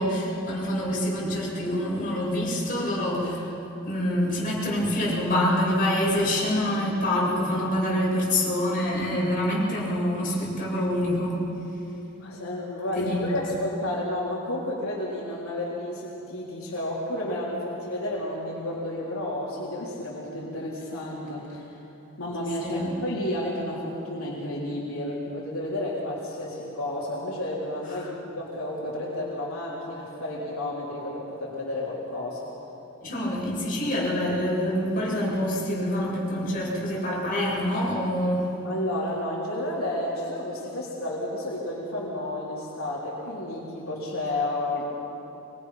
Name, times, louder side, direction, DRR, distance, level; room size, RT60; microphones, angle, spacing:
voice 1, 0.0-3.6 3.8-11.4 12.9-13.4 22.6-22.9 33.0-38.5, left 1 dB, 40° left, -6 dB, 7.5 m, -26 dB
voice 2, 12.2-21.6 22.2-32.5 38.6-44.9, left 1 dB, 85° left, -6 dB, 3.9 m, -31 dB
24.0 x 22.5 x 5.9 m, 2.9 s
head